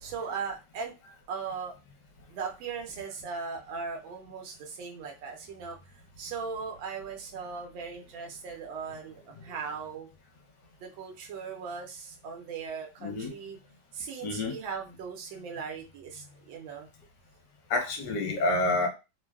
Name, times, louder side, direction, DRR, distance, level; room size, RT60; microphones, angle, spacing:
voice 1, 0.0-0.9 1.3-1.7 2.3-5.8 6.2-10.1 10.8-13.6 13.9-16.9, right 5 dB, 85° right, 1 dB, 1.4 m, -38 dB
voice 2, 13.0-13.3 14.2-14.6 17.7-18.9, left 2 dB, 70° left, 2 dB, 1.3 m, -28 dB
3.3 x 2.2 x 2.2 m, 0.27 s
omnidirectional pair, 2.0 m